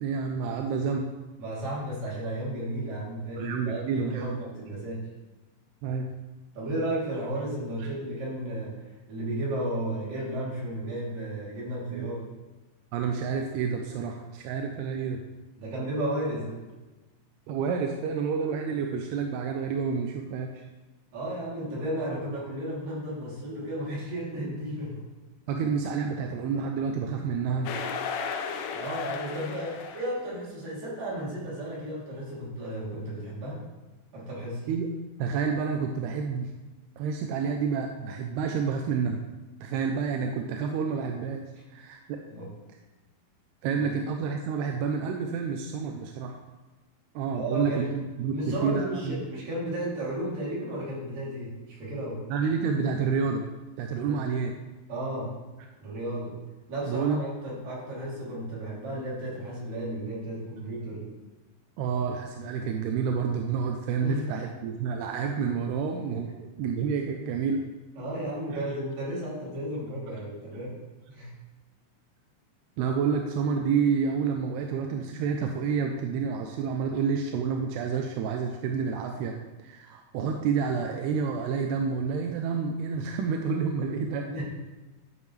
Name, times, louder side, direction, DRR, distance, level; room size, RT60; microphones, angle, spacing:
voice 1, 0.0-1.1 3.4-4.4 5.8-6.1 11.9-12.1 12.9-15.2 17.5-20.6 25.5-27.7 34.7-34.9 35.2-36.5 37.0-39.2 39.6-41.4 41.7-42.2 43.6-46.4 47.2-49.2 52.3-53.5 53.8-54.5 55.3-55.4 56.9-57.2 61.8-67.6 72.8-79.3 79.6-84.3, right 6 dB, 90° right, 3 dB, 2.7 m, -29 dB
voice 2, 1.4-5.1 6.5-8.7 9.1-12.3 15.6-16.6 21.1-25.1 28.7-33.6 34.1-34.7 42.3-42.5 43.8-43.9 47.3-48.0 48.3-52.3 54.0-54.2 54.9-55.3 55.8-56.4 56.7-61.1 64.0-64.3 68.0-70.8 71.1-71.3 84.2-84.4, right 1 dB, 60° right, -7 dB, 4.6 m, -33 dB
sound 1, 27.7-30.2, left 6 dB, 80° left, 1.9 m, -34 dB
12.0 x 7.2 x 3.3 m, 1.2 s
omnidirectional pair, 4.5 m